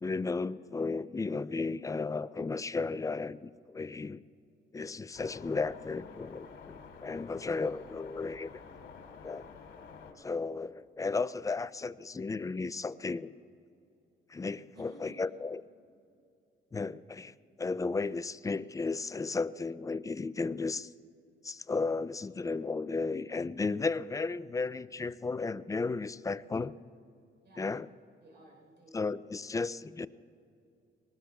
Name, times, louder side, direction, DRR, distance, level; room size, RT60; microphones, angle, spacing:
voice 1, 0.0-4.2 4.7-8.5 9.2-9.5 10.2-13.3 14.3-15.6 16.7-20.9 21.4-26.7 27.6-27.9 28.9-30.1, left 4 dB, 15° left, 0.3 m, -34 dB
sound 1, 5.1-10.1, left 5 dB, 75° left, 2.5 m, -50 dB
voice 2, 7.5-7.9 14.7-15.3 27.4-27.7 28.2-29.1, right 1 dB, 60° right, 4.0 m, -56 dB
22.5 x 19.0 x 2.3 m
cardioid pair, 90°, 20 cm